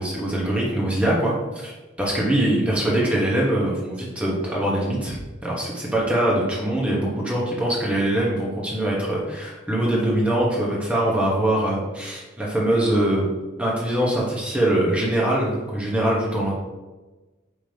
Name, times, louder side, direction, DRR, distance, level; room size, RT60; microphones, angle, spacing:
voice 1, 0.0-1.7 2.0-5.2 5.4-13.3 13.6-16.5, right 1 dB, 5° right, -5 dB, 0.8 m, -23 dB
5.3 x 2.7 x 3.2 m, 1.2 s
head